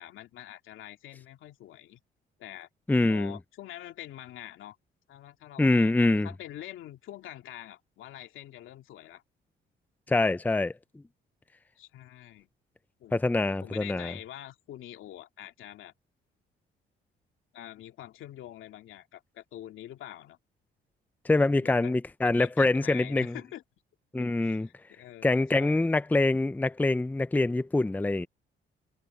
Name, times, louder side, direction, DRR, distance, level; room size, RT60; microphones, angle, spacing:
voice 1, 0.0-2.0 2.4-2.7 3.1-4.8 5.1-6.0 6.2-9.2 11.8-12.5 13.0-13.2 13.6-15.9 17.5-20.4 21.3-23.6 24.2-26.0, left 13 dB, 85° left, 2.6 m, -45 dB
voice 2, 2.9-3.4 5.6-6.3 10.1-10.7 13.1-14.1 21.3-23.3 24.1-24.7 25.2-28.3, left 2 dB, 10° left, 0.6 m, -25 dB
cardioid pair, 90°, 20 cm